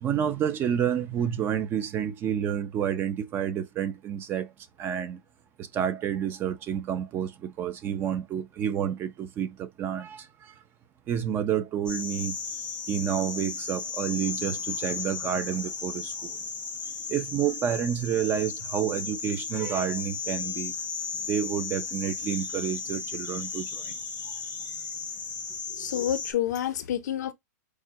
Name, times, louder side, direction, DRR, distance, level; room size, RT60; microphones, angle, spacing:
voice 1, 0.0-4.5 4.8-5.2 5.6-10.6 11.1-12.4 12.9-16.5 16.8-20.7 21.3-24.7, right 9 dB, 25° right, 0.5 m, -29 dB
sound 1, 11.9-26.3, left 5 dB, 10° left, 0.7 m, -35 dB
voice 2, 25.8-27.3, left 11 dB, 75° left, 0.6 m, -28 dB
4.7 x 2.2 x 2.7 m
supercardioid pair, 150°, 9 cm